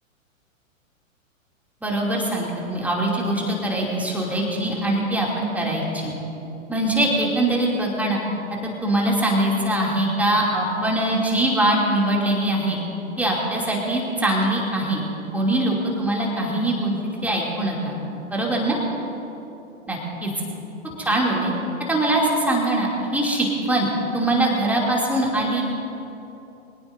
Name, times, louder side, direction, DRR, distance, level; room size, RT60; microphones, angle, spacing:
voice 1, 1.8-6.1 6.7-8.2 8.8-12.8 13.2-15.0 15.3-17.9 18.3-18.8 19.9-20.3 21.0-21.5 21.9-23.9 24.1-25.6, right 1 dB, 5° right, -3 dB, 2.6 m, -22 dB
24.0 x 17.5 x 2.7 m, 3.0 s
figure-of-eight pair, 105°, 41 cm